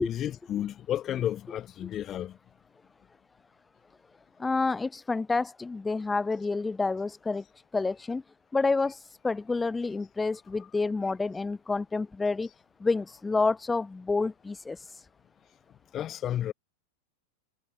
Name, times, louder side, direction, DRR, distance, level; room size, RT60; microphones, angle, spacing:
voice 1, 0.0-2.4 15.9-16.5, left 11 dB, 30° left, 1.8 m, -32 dB
voice 2, 4.4-7.4 7.7-8.2 8.5-12.5 12.8-15.0, left 3 dB, 10° left, 0.7 m, -29 dB
figure-of-eight pair, 90°, 0 cm